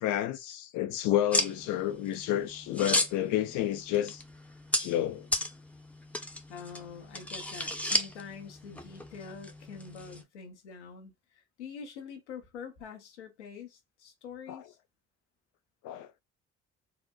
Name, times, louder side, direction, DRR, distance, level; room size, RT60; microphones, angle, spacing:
voice 1, 0.0-4.2 4.7-5.3 14.5-14.6 15.8-16.1, left 12 dB, 60° left, 0.5 m, -30 dB
sound 1, 1.3-10.2, left 1 dB, 5° left, 0.7 m, -35 dB
voice 2, 6.5-14.8, left 6 dB, 90° left, 0.8 m, -45 dB
3.9 x 2.1 x 2.2 m
hypercardioid pair, 50°, 34 cm